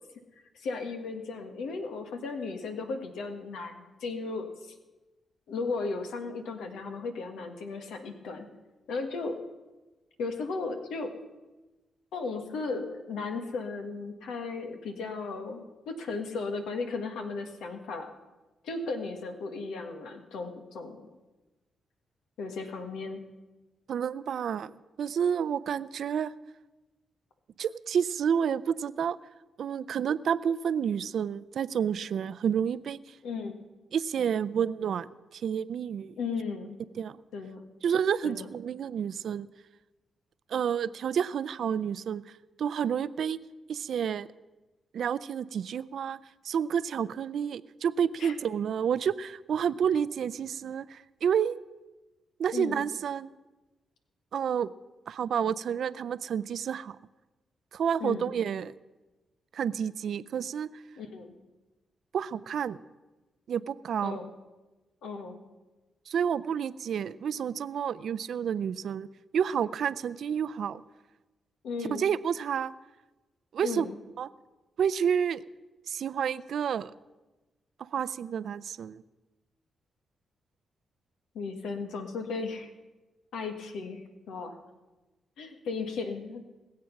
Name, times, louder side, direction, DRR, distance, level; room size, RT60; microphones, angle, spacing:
voice 1, 0.5-4.7 5.5-8.4 8.9-9.4 10.2-11.1 12.1-18.1 18.6-21.1 22.4-23.2 33.2-33.6 36.2-36.8 37.3-37.6 38.2-38.5 48.2-48.3 52.5-52.9 58.0-58.3 61.0-61.4 64.0-64.3 65.0-65.4 71.6-72.0 73.6-73.9 81.3-82.7 83.3-84.6 85.4-86.4, left 4 dB, 85° left, 6 dB, 1.5 m, -35 dB
voice 2, 23.9-26.3 27.6-29.2 29.6-33.0 33.9-36.1 37.0-37.2 37.8-39.5 40.5-42.3 42.6-43.4 43.7-44.3 44.9-46.2 46.4-51.6 52.4-53.3 54.3-54.7 55.1-57.0 57.7-58.7 59.5-60.7 62.1-62.8 63.5-64.2 66.1-69.1 69.3-70.8 71.9-72.7 73.5-73.9 74.2-74.3 74.8-75.4 75.9-76.9 77.8-79.0, right 8 dB, 70° right, 16 dB, 0.5 m, -29 dB
20.5 x 7.6 x 5.9 m, 1.1 s
cardioid pair, 65°, 0 cm